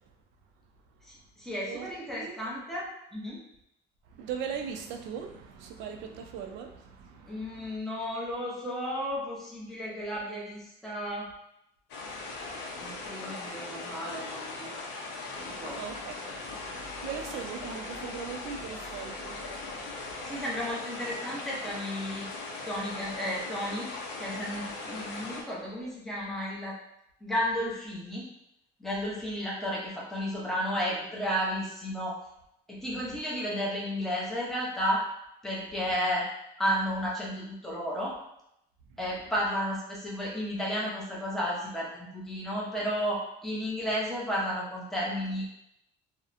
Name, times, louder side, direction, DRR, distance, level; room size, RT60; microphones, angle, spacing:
voice 1, 1.0-3.4 7.3-11.3 12.8-14.7 15.4-15.8 20.2-22.3 22.6-23.9 24.2-26.8 27.2-28.3 28.8-32.2 32.7-35.0 35.4-36.3 36.6-38.2 39.0-45.5, equal, ahead, -6 dB, 0.5 m, -33 dB
voice 2, 4.1-7.8 12.1-13.1 15.4-16.1 16.5-20.4 38.9-39.0, right 7 dB, 85° right, 4 dB, 0.4 m, -40 dB
sound 1, 11.9-25.4, left 3 dB, 75° left, 0.6 m, -39 dB
2.7 x 2.1 x 2.4 m, 0.79 s
cardioid pair, 160°, 18 cm